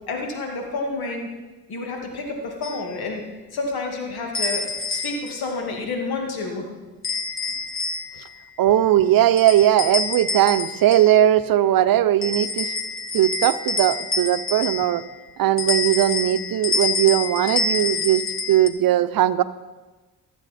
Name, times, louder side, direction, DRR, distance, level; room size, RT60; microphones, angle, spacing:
voice 1, 0.1-1.3 1.7-3.2 3.5-4.6 4.9-6.8, left 3 dB, 85° left, 1 dB, 2.1 m, -29 dB
sound 1, 2.6-2.8 4.3-5.4 7.0-8.3 9.4-11.2 12.2-15.1 15.6-18.7, left 4 dB, 35° left, 1.0 m, -27 dB
voice 2, 8.6-12.7 13.1-15.0 15.4-18.2 18.5-19.4, right 12 dB, 70° right, 14 dB, 0.6 m, -19 dB
15.0 x 8.3 x 4.2 m, 1.2 s
cardioid pair, 60°, 37 cm